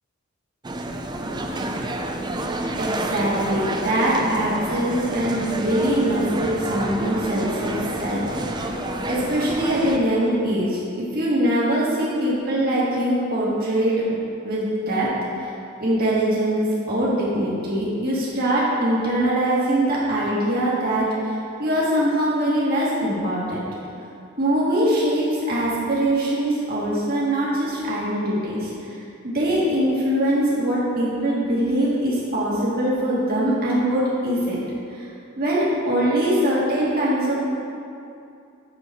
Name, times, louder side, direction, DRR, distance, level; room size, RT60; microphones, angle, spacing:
sound 1, 0.6-10.0, right 1 dB, 20° right, 0.5 m, -29 dB
voice 1, 2.8-8.7 9.1-14.0 14.4-15.1 15.4-15.5 15.8-21.3 21.6-23.6 24.4-28.9 29.2-34.6 35.0-35.1 35.4-37.5, right 1 dB, 50° right, -7 dB, 2.0 m, -22 dB
7.0 x 5.9 x 6.9 m, 2.6 s
head